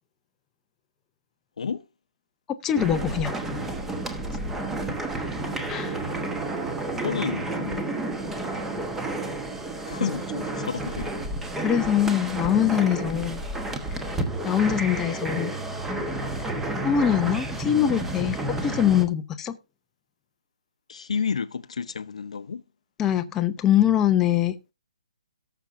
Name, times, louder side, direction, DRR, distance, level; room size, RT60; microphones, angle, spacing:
voice 1, 1.6-1.9 6.9-8.0 9.7-11.1 20.9-22.6, left 6 dB, 65° left, 0.8 m, -31 dB
voice 2, 2.5-3.3 5.7-6.0 11.6-13.4 14.4-15.5 16.8-18.4 18.6-19.6 23.0-24.5, left 10 dB, 10° left, 0.6 m, -23 dB
sound 1, 2.8-19.0, right 2 dB, 5° right, 1.1 m, -31 dB
17.5 x 6.9 x 2.5 m
hypercardioid pair, 155°, 4 cm